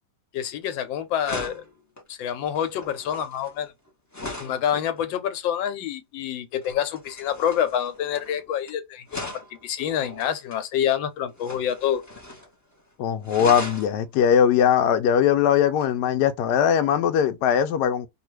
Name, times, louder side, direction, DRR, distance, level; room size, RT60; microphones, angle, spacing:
voice 1, 0.3-1.6 2.1-3.7 4.4-12.0, left 9 dB, 90° left, 1.4 m, -27 dB
sound 1, 0.6-0.8 1.2-4.7 6.6-8.7 9.1-10.6 11.3-12.5 12.8-12.9 13.2-13.9 15.8-15.9, left 1 dB, 30° left, 0.3 m, -38 dB
voice 2, 13.0-18.1, left 8 dB, 75° left, 1.0 m, -20 dB
2.8 x 2.4 x 3.1 m
omnidirectional pair, 2.0 m